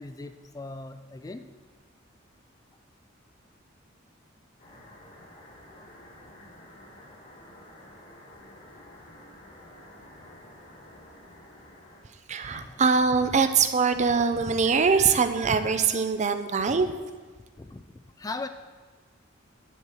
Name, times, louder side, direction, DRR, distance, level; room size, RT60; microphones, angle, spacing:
voice 1, 0.0-1.5 12.5-12.8 17.6-18.5, left 3 dB, 20° left, 9 dB, 0.3 m, -39 dB
sound 1, 4.6-12.0, left 1 dB, 45° left, 2.3 m, -50 dB
voice 2, 12.3-16.9, right 5 dB, 35° right, 9 dB, 0.5 m, -23 dB
9.9 x 4.6 x 7.6 m, 1.4 s
head